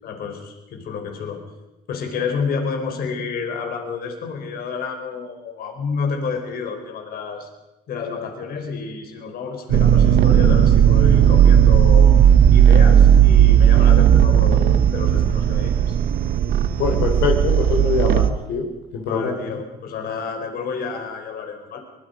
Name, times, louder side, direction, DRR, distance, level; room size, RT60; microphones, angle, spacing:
voice 1, 0.0-1.4 1.9-7.5 7.9-12.2 12.5-16.0 19.1-21.8, left 5 dB, 65° left, 4 dB, 4.4 m, -29 dB
sound 1, 9.7-18.3, right 9 dB, 60° right, 1.2 m, -14 dB
voice 2, 16.8-18.7 18.9-19.6, left 5 dB, 85° left, 2 dB, 4.0 m, -23 dB
24.0 x 22.0 x 5.2 m, 0.98 s
cardioid pair, 110°, 17 cm